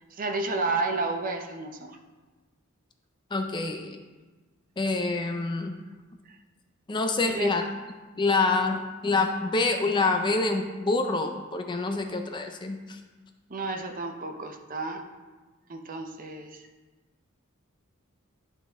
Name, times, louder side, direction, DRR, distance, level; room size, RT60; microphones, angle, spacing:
voice 1, 0.1-2.0 7.3-7.6 13.5-15.1 15.7-16.6, right 3 dB, 40° right, 5 dB, 0.6 m, -31 dB
voice 2, 3.3-4.0 4.8-5.8 6.9-7.6 8.2-13.0, left 3 dB, 20° left, 5 dB, 0.4 m, -26 dB
11.0 x 4.0 x 3.4 m, 1.3 s
head